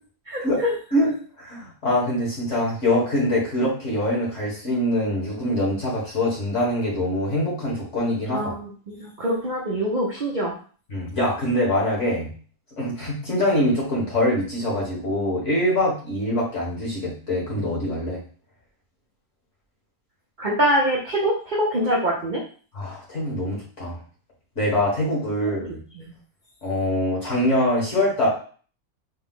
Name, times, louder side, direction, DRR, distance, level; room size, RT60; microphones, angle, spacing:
voice 1, 0.3-0.7 8.3-10.5 20.4-22.4 25.4-25.5 26.0-26.1, equal, 50° right, -3 dB, 0.6 m, -24 dB
voice 2, 0.9-8.5 10.9-12.3 12.8-18.2 22.7-24.0 24.6-25.8 26.6-28.3, left 1 dB, 50° left, -4 dB, 1.9 m, -24 dB
4.3 x 2.3 x 3.7 m, 0.42 s
omnidirectional pair, 1.6 m